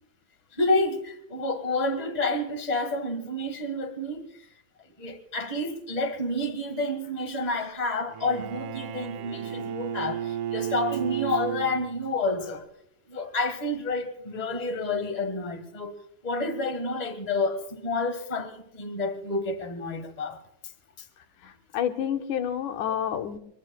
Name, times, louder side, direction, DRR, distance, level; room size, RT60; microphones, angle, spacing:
voice 1, 0.5-4.3 5.0-12.7 13.1-15.9 16.2-20.4 21.0-21.1, left 2 dB, 45° left, 0.5 m, -29 dB
Bowed string instrument, 8.1-12.2, right 10 dB, 85° right, 2.3 m, -33 dB
voice 2, 21.4-23.4, left 9 dB, 85° left, 2.5 m, -29 dB
25.0 x 21.0 x 2.2 m
omnidirectional pair, 3.4 m